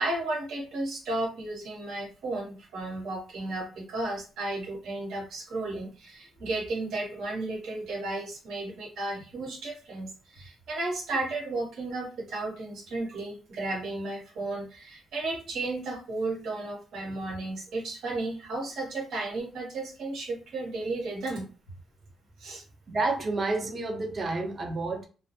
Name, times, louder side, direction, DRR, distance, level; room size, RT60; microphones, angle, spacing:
voice 1, 0.0-21.4 22.4-22.6, right 2 dB, 75° right, -1 dB, 1.1 m, -33 dB
voice 2, 22.9-25.0, right 3 dB, 40° right, 3 dB, 0.7 m, -29 dB
2.1 x 2.0 x 2.8 m, 0.35 s
cardioid pair, 90°, 0 cm